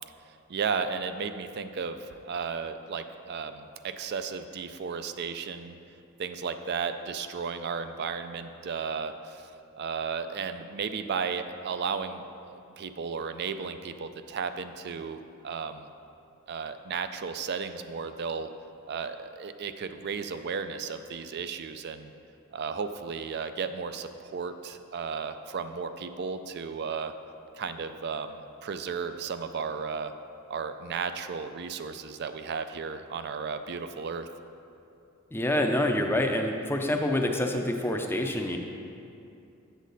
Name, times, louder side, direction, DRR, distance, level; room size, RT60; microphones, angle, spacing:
voice 1, 0.5-5.8 6.2-12.2 12.5-15.9 16.5-18.5 18.8-22.1 22.5-27.1 27.6-30.1 30.5-34.3, right 5 dB, 50° right, 10 dB, 0.4 m, -34 dB
voice 2, 35.3-38.6, left 1 dB, 10° left, 3 dB, 0.5 m, -27 dB
8.2 x 7.3 x 4.0 m, 2.6 s
head